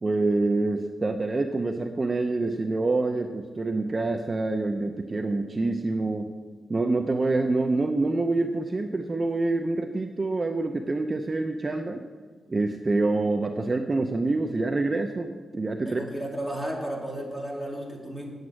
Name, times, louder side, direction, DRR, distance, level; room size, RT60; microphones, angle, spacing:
voice 1, 0.0-6.3 6.7-12.0 12.5-16.0, right 2 dB, 30° right, 5 dB, 0.6 m, -26 dB
voice 2, 15.8-18.3, right 1 dB, 10° left, -2 dB, 2.5 m, -33 dB
9.3 x 7.9 x 7.6 m, 1.5 s
wide cardioid pair, 115°, 0 cm